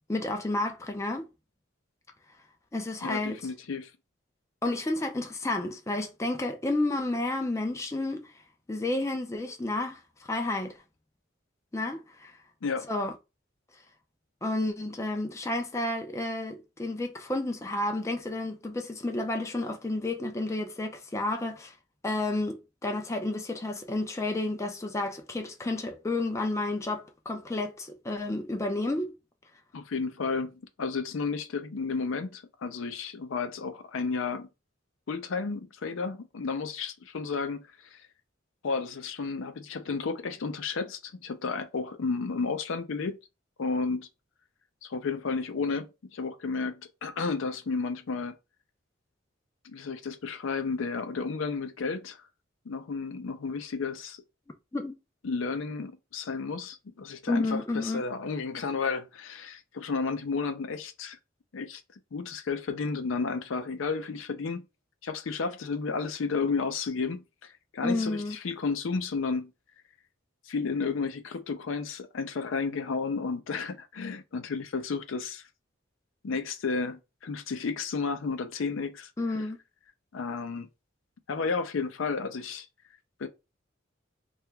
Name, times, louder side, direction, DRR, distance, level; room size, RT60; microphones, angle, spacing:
voice 1, 0.1-1.3 2.7-3.5 4.6-8.3 8.7-10.8 11.7-12.4 12.9-13.1 14.4-21.7 22.0-29.2 54.7-55.0 57.3-58.0 67.8-68.4 79.2-79.6, left 2 dB, 15° left, 0.4 m, -31 dB
voice 2, 3.0-3.9 12.6-12.9 29.7-34.5 35.1-38.0 38.6-43.2 43.6-44.1 44.8-48.4 49.6-52.2 52.7-54.2 55.2-61.2 61.5-61.8 62.1-64.7 65.0-69.5 70.5-75.4 76.2-79.1 80.1-80.7 81.3-82.7 83.2-83.3, left 4 dB, 70° left, 0.5 m, -32 dB
2.8 x 2.3 x 3.2 m
head